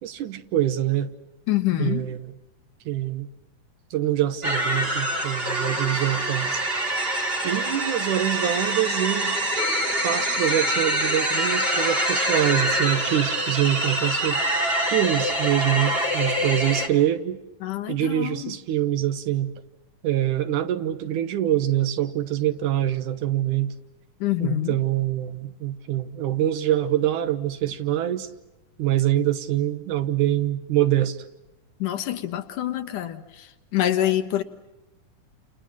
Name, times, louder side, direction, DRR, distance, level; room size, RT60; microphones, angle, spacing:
voice 1, 0.0-1.1 1.8-2.3 2.9-3.3 3.9-6.6 7.4-9.4 10.0-14.4 14.9-17.4 17.9-19.5 20.0-23.7 24.4-28.3 28.8-31.2, right 12 dB, 75° right, 2.6 m, -25 dB
voice 2, 1.5-2.0 17.6-18.5 24.2-24.8 31.8-34.4, left 13 dB, 80° left, 2.8 m, -26 dB
sound 1, 4.4-16.9, right 1 dB, 20° right, 2.6 m, -25 dB
29.5 x 28.5 x 6.1 m
omnidirectional pair, 3.6 m